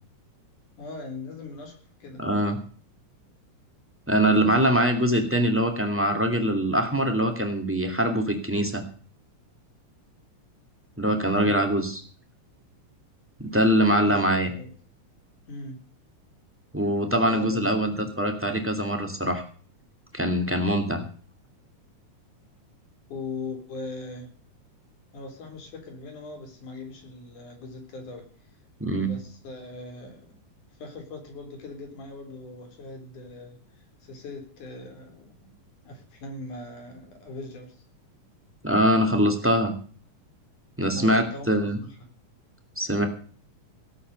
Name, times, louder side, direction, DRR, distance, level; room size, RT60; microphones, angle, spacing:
voice 1, 0.8-2.2 11.3-11.6 13.9-14.7 15.5-15.8 17.2-18.1 23.1-24.3 25.1-28.3 29.0-30.4 30.8-35.5 35.9-37.8 40.9-42.1, left 2 dB, 90° left, 4 dB, 5.4 m, -40 dB
voice 2, 2.2-2.6 4.1-8.8 11.0-12.0 13.4-14.5 16.7-19.4 20.1-21.0 28.8-29.1 38.6-39.8 40.8-41.8 42.8-43.1, equal, 5° right, 6 dB, 2.3 m, -23 dB
18.0 x 8.6 x 6.7 m, 0.43 s
omnidirectional pair, 3.4 m